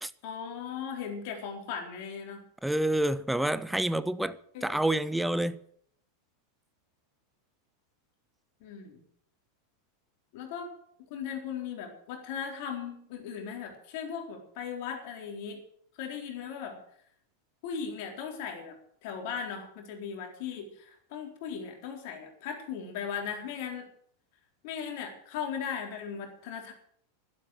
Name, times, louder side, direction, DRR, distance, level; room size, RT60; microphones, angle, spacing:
voice 1, 0.2-2.4 4.5-4.8 8.6-9.0 10.3-10.7 11.1-15.6 16.0-16.8 17.6-18.7 19.0-23.8 24.6-26.7, left 7 dB, 45° left, 3.9 m, -38 dB
voice 2, 2.6-5.6, right 1 dB, 5° right, 0.7 m, -28 dB
12.0 x 12.0 x 7.7 m
figure-of-eight pair, 90°, 0 cm